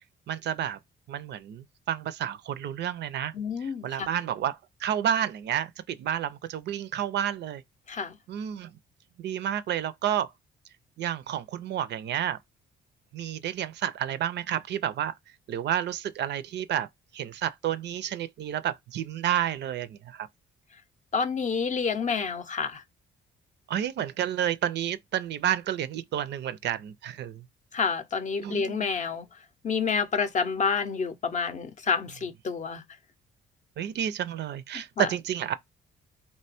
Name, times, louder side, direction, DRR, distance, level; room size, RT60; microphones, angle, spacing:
voice 1, 0.3-0.8 1.1-3.3 3.6-7.6 8.3-8.7 9.2-10.3 11.0-12.4 13.1-15.1 15.5-16.9 17.1-20.3 23.7-27.4 28.4-28.9 33.8-35.5, right 10 dB, 60° right, 0.4 m, -30 dB
voice 2, 3.3-4.1 7.9-8.2 21.1-22.8 27.7-29.3 29.6-32.8 34.7-35.1, left 5 dB, 40° left, 0.5 m, -29 dB
2.9 x 2.2 x 4.1 m
cardioid pair, 90°, 20 cm